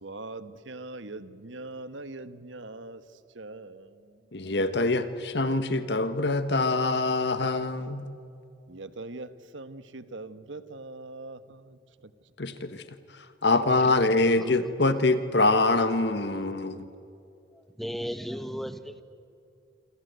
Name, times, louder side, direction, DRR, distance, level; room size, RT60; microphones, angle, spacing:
voice 1, 0.0-3.0 3.3-3.9 8.7-11.8, right 2 dB, 90° right, 12 dB, 1.4 m, -41 dB
voice 2, 4.3-8.0 12.4-12.7 13.4-16.8, left 2 dB, 65° left, 10 dB, 1.4 m, -24 dB
voice 3, 17.5-19.0, equal, ahead, 10 dB, 1.2 m, -36 dB
27.0 x 26.0 x 8.2 m, 2.5 s
head